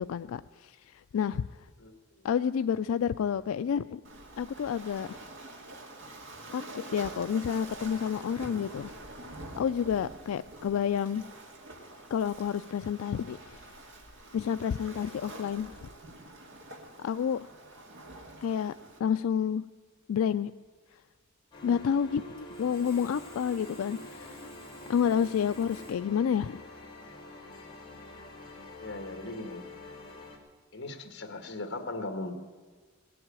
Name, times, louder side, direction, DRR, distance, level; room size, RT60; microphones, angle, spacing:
voice 1, 0.0-1.5 2.2-4.0 4.4-5.2 6.5-8.9 9.6-11.2 12.1-13.7 14.3-15.9 17.0-17.4 18.4-18.7 19.0-19.6 20.1-20.5 21.6-24.5 24.9-26.6, left 8 dB, 90° left, 11 dB, 0.3 m, -29 dB
voice 2, 1.8-2.3 28.8-29.6 30.7-32.3, left 2 dB, 55° left, 7 dB, 1.7 m, -38 dB
Waves surf, 4.0-19.0, right 2 dB, 65° right, 2.0 m, -46 dB
sound 1, 21.5-30.4, left 1 dB, 25° left, 2.6 m, -47 dB
Sawing, 22.4-25.9, equal, 15° right, 3.7 m, -52 dB
18.0 x 7.8 x 8.8 m, 1.5 s
head